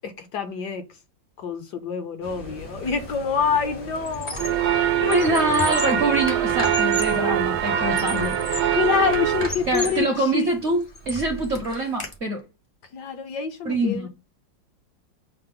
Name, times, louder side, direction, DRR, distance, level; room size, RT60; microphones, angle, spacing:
voice 1, 0.0-0.8 1.4-4.4 8.7-10.1 10.3-10.5 12.9-14.1, left 6 dB, 70° left, 1.2 m, -26 dB
sound 1, 2.2-10.0, equal, 85° left, 2.9 m, -38 dB
Squeak, 2.8-3.1 3.5-4.7 5.0-7.2 7.7-8.8 9.1-10.1 10.6-12.1, left 1 dB, 50° left, 0.3 m, -34 dB
sound 2, 4.4-9.5, right 10 dB, 75° right, 1.3 m, -23 dB
voice 2, 5.0-8.4 9.7-12.4 13.6-14.1, right 1 dB, 55° right, 0.8 m, -24 dB
5.7 x 2.0 x 3.6 m
omnidirectional pair, 2.0 m